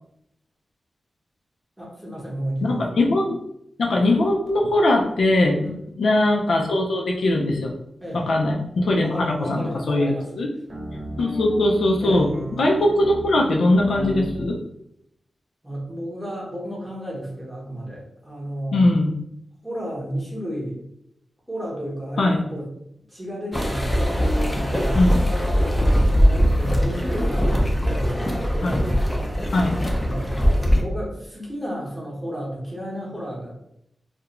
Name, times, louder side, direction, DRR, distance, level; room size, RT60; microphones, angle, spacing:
voice 1, 1.8-2.9 5.6-5.7 8.0-8.2 9.0-10.4 12.0-12.2 15.6-18.8 19.6-20.8 21.5-22.7 23.1-25.8 26.1-28.8 29.7-33.6, equal, 10° right, -4 dB, 0.8 m, -32 dB
voice 2, 2.6-3.4 3.8-5.6 6.0-7.7 8.1-10.5 11.2-14.6 18.7-19.1 22.2-22.4 24.9-25.2 28.6-28.8 29.5-29.8, left 1 dB, 75° left, 1 dB, 0.4 m, -20 dB
sound 1, 10.7-14.5, right 1 dB, 45° right, 0.8 m, -34 dB
sound 2, 23.5-30.8, equal, 5° left, 0.4 m, -21 dB
2.4 x 2.1 x 2.9 m, 0.78 s
wide cardioid pair, 145°, 0 cm